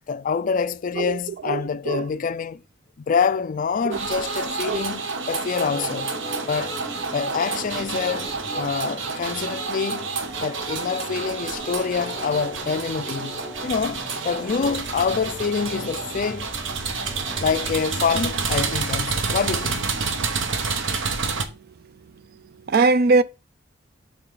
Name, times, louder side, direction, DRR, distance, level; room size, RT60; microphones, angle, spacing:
voice 1, 0.1-2.6 3.0-6.2 6.5-6.8 7.1-10.1 10.4-16.5 17.4-19.9, left 6 dB, 45° left, 0.4 m, -26 dB
voice 2, 1.5-2.1 3.9-4.0 4.7-4.9 22.7-23.2, right 3 dB, 50° right, 0.4 m, -20 dB
sound 1, 3.9-21.4, right 4 dB, 70° right, 0.9 m, -29 dB
Organ, 5.6-17.8, left 1 dB, 15° left, 0.9 m, -40 dB
7.6 x 5.6 x 3.9 m
head